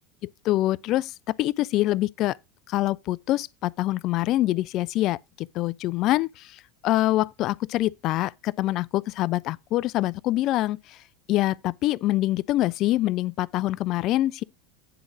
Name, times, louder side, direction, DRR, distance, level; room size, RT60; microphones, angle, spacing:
voice 1, 0.4-1.1 1.4-2.4 2.7-11.0 11.3-14.4, left 16 dB, 50° left, 0.3 m, -25 dB
9.3 x 3.8 x 6.0 m
hypercardioid pair, 85°, 0 cm